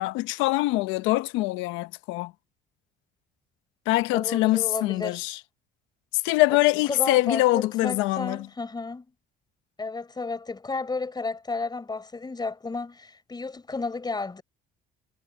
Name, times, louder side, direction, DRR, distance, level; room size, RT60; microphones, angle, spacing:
voice 1, 0.0-2.3 3.9-5.4 6.1-8.5, left 19 dB, 90° left, 0.9 m, -24 dB
voice 2, 4.1-5.2 6.9-9.1 9.8-14.4, left 3 dB, 20° left, 4.2 m, -32 dB
cardioid pair, 95°, 20 cm